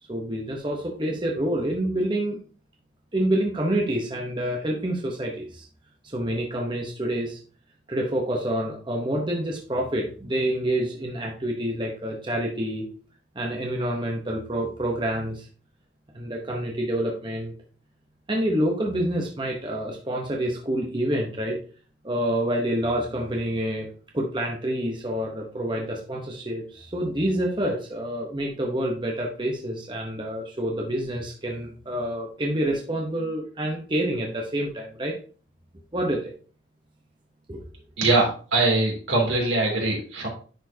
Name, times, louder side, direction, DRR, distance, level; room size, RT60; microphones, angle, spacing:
voice 1, 0.1-2.4 3.1-5.6 6.0-7.4 7.9-12.8 13.3-15.5 16.1-17.5 18.3-21.6 22.0-23.9 24.1-35.1 35.9-36.3 37.5-37.6, right 1 dB, 25° right, 0 dB, 1.0 m, -27 dB
voice 2, 38.0-40.3, right 2 dB, 80° right, -1 dB, 2.9 m, -22 dB
10.5 x 4.5 x 2.8 m, 0.39 s
head